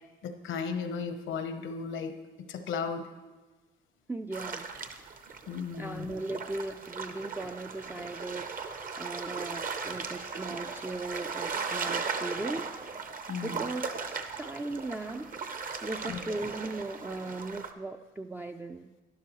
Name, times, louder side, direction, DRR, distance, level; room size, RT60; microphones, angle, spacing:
voice 1, 0.2-2.1 2.5-3.1 5.5-6.1 13.3-13.7 16.1-16.2, left 5 dB, 80° left, 8 dB, 0.9 m, -35 dB
voice 2, 4.1-4.7 5.8-12.8 13.3-15.3 15.8-18.9, right 2 dB, 10° right, 4 dB, 0.3 m, -38 dB
sound 1, 4.3-17.7, right 5 dB, 45° right, 0.8 m, -37 dB
12.0 x 10.5 x 3.0 m, 1.3 s
cardioid pair, 90°, 20 cm